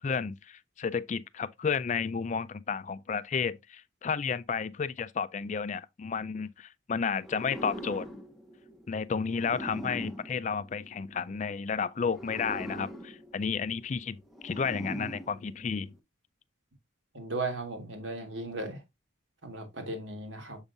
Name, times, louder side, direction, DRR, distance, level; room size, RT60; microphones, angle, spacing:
voice 1, 0.0-8.1 8.9-15.9, left 6 dB, 35° left, 0.3 m, -32 dB
sound 1, 7.2-11.3 12.0-16.0, equal, ahead, 0.8 m, -43 dB
voice 2, 14.7-15.1 17.1-18.8 19.4-20.6, right 2 dB, 75° right, 1.9 m, -36 dB
7.2 x 5.3 x 2.6 m
head